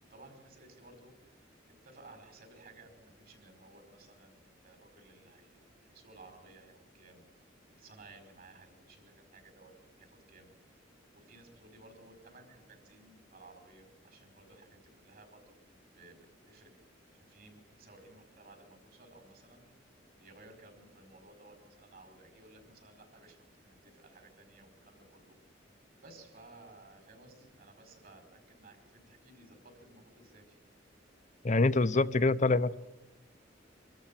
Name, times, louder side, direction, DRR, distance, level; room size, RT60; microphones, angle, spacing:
voice 1, 0.1-1.5 1.8-7.2 7.7-9.7 10.0-10.5 11.1-15.6 16.0-16.7 17.1-19.7 20.2-25.4 26.0-30.6, right 2 dB, 50° right, 6 dB, 5.2 m, -57 dB
voice 2, 31.4-32.7, left 3 dB, 40° left, 14 dB, 0.7 m, -25 dB
25.0 x 14.0 x 9.2 m, 0.96 s
head